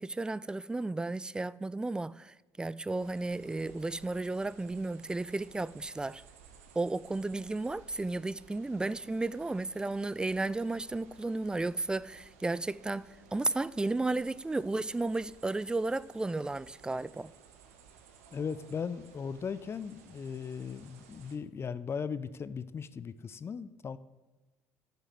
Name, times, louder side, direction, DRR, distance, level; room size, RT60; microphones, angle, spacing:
voice 1, 0.0-6.2 6.8-17.3, right 2 dB, 10° right, 0.4 m, -33 dB
sound 1, 3.0-21.4, right 6 dB, 70° right, 1.2 m, -58 dB
voice 2, 18.3-24.0, left 6 dB, 30° left, 0.7 m, -38 dB
10.5 x 6.9 x 7.8 m
figure-of-eight pair, 55°, 8 cm